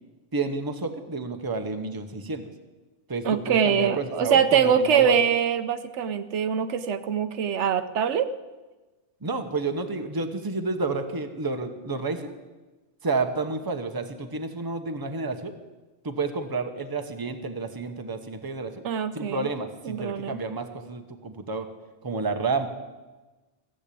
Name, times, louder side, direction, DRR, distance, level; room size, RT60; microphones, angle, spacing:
voice 1, 0.3-2.4 3.1-5.2 9.2-12.3 13.0-15.5 16.0-18.8 19.1-21.7 22.0-22.7, right 3 dB, 20° right, 7 dB, 0.9 m, -30 dB
voice 2, 3.2-8.3 18.8-19.5 19.8-20.4, right 7 dB, 75° right, 11 dB, 1.0 m, -23 dB
15.5 x 7.6 x 8.4 m, 1.2 s
omnidirectional pair, 1.2 m